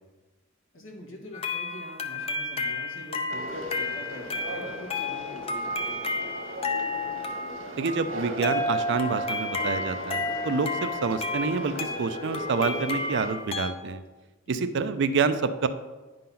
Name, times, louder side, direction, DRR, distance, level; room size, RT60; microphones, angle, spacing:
voice 1, 0.7-6.0 14.5-14.7, equal, 70° left, 1 dB, 1.6 m, -44 dB
sound 1, 1.3-13.7, left 2 dB, 30° left, 0.6 m, -32 dB
Conversation, 3.3-13.3, right 1 dB, 90° right, 1.4 m, -38 dB
voice 2, 7.8-14.0 14.5-15.7, right 5 dB, 60° right, 11 dB, 0.4 m, -27 dB
9.5 x 3.9 x 5.7 m, 1.2 s
head